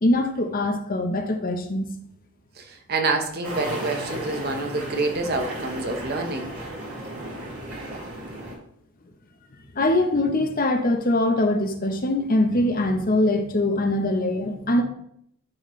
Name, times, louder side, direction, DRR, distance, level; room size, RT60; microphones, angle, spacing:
voice 1, 0.0-1.9 9.7-14.8, left 1 dB, 40° left, 5 dB, 0.8 m, -22 dB
voice 2, 2.6-6.5, right 3 dB, 45° right, 4 dB, 0.9 m, -27 dB
sound 1, 3.4-8.6, right 1 dB, 70° right, 3.0 m, -34 dB
11.0 x 4.3 x 3.2 m, 0.70 s
head